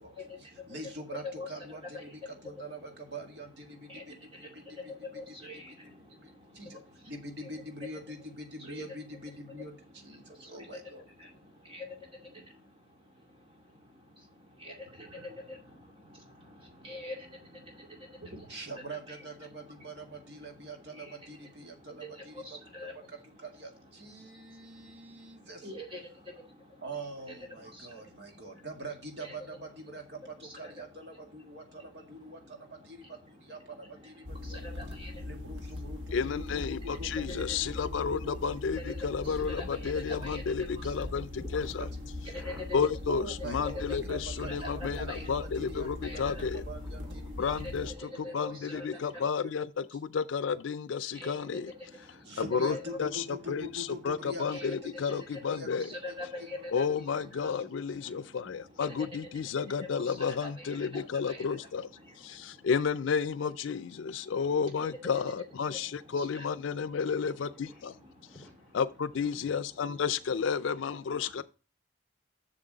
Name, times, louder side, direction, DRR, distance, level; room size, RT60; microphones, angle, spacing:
voice 1, 0.0-4.8 6.0-11.1 18.5-22.6 22.9-25.7 26.8-34.6 35.2-38.5 38.9-39.3 39.7-39.8 40.6-41.9 43.1-47.4 47.8-49.5 52.3-55.2 55.5-55.8 56.9-57.1, right 1 dB, 65° right, 1.9 m, -45 dB
voice 2, 5.1-5.7 8.7-8.8 11.7-11.8 14.6-14.7 15.0-15.6 16.8-17.2 18.2-18.4 19.1-19.2 21.0-21.1 22.4-22.9 25.6-26.0 27.8-27.9 29.2-29.4 34.6-35.1 38.8-39.0 39.2-40.4 43.9-44.2 44.5-45.2 46.0-46.4 47.6-47.7 48.2-48.7 51.1-51.3 52.6-53.0 54.5-54.8 55.8-56.8 60.0-61.4 66.2-66.4, left 1 dB, 30° right, 2.3 m, -42 dB
sound 1, 34.3-48.0, left 2 dB, 80° right, 1.3 m, -40 dB
voice 3, 36.1-41.8 42.7-46.6 47.4-51.7 52.4-55.9 56.7-61.9 62.2-67.9 68.7-71.4, left 6 dB, 90° left, 0.4 m, -32 dB
voice 4, 41.3-41.8 42.2-42.7 44.9-45.0 46.8-47.4 48.0-48.3 49.0-49.3 51.0-51.3 52.9-53.2 55.6-56.8 57.2-57.4 58.0-58.1 59.8-60.0 60.2-60.6 61.0-61.2 61.5-62.7 65.5-66.2 66.9-68.8 69.2-70.0 70.4-71.2, left 1 dB, 10° left, 3.7 m, -56 dB
7.5 x 6.6 x 3.9 m
head